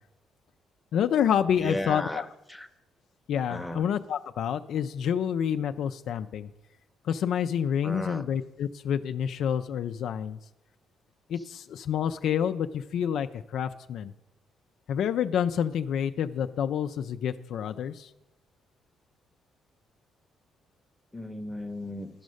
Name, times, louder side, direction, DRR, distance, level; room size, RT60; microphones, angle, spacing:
voice 1, 0.9-2.2 3.3-6.5 7.0-10.4 11.3-14.1 14.9-18.1, left 8 dB, 75° left, 9 dB, 0.4 m, -28 dB
voice 2, 1.6-2.7 3.5-3.9 7.8-8.3 21.1-22.1, left 1 dB, 5° left, 6 dB, 0.8 m, -35 dB
12.0 x 5.3 x 6.3 m, 0.96 s
cardioid pair, 90°, 0 cm